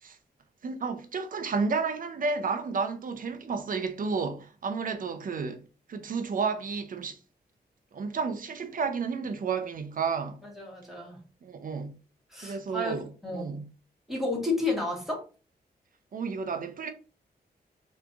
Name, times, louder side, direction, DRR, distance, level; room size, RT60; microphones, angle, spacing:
voice 1, 0.6-7.2 7.9-10.4 11.4-12.0 12.4-13.1 13.3-13.7 16.1-16.9, right 5 dB, 55° right, 0.7 m, -31 dB
voice 2, 10.4-11.2 12.3-13.6 14.1-15.2, left 2 dB, ahead, 1.8 m, -32 dB
3.5 x 3.3 x 3.8 m
wide cardioid pair, 120°, 17 cm